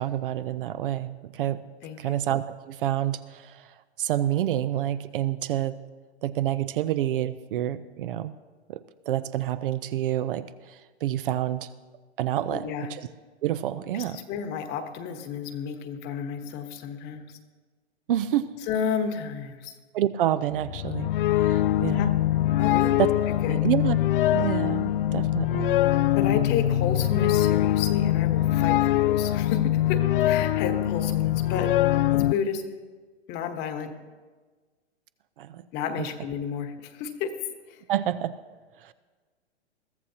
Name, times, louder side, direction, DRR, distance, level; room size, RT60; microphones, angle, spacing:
voice 1, 0.0-1.6 2.0-3.7 4.0-5.8 6.2-8.3 8.7-8.8 9.1-11.7 12.2-13.1 13.4-14.2 18.1-18.5 19.9-21.1 21.4-22.1 23.0-23.1 23.5-24.0 24.3-25.8 35.4-35.6 37.9-38.4 38.8-38.9, right 12 dB, 50° right, 13 dB, 0.6 m, -28 dB
voice 2, 1.8-2.1 12.5-12.9 13.9-17.4 18.7-19.7 21.9-22.1 22.6-22.9 23.4-23.6 26.1-31.7 32.1-32.6 33.3-33.9 35.7-37.3 37.7-37.8, left 7 dB, 30° left, 8 dB, 1.2 m, -32 dB
sound 1, 20.6-32.3, left 13 dB, 55° left, 0.4 m, -23 dB
22.0 x 14.0 x 2.9 m, 1.4 s
hypercardioid pair, 125°, 34 cm